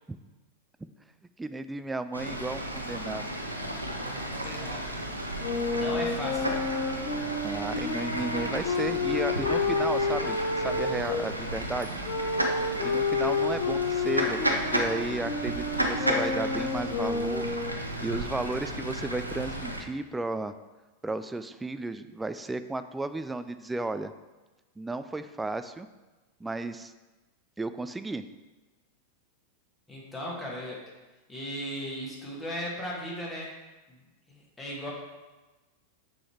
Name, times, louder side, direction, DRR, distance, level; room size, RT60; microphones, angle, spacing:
voice 1, 1.4-3.3 7.4-12.0 12.8-17.5 18.0-20.5 21.0-24.1 24.8-25.9 26.4-26.9 27.6-28.2, right 2 dB, 10° right, 11 dB, 0.3 m, -34 dB
Fowl / Bird, 2.1-19.8, right 1 dB, 85° right, 0.7 m, -33 dB
voice 2, 3.8-4.9 5.7-6.8 13.6-13.8 29.9-30.8 31.3-33.5 33.9-34.0 34.3-34.9, equal, 15° left, -4 dB, 1.9 m, -37 dB
Wind instrument woodwind instrument, 5.4-11.2 12.0-17.8, left 3 dB, 45° left, 0.9 m, -30 dB
6.2 x 4.9 x 4.5 m, 1.2 s
figure-of-eight pair, 90°, 0 cm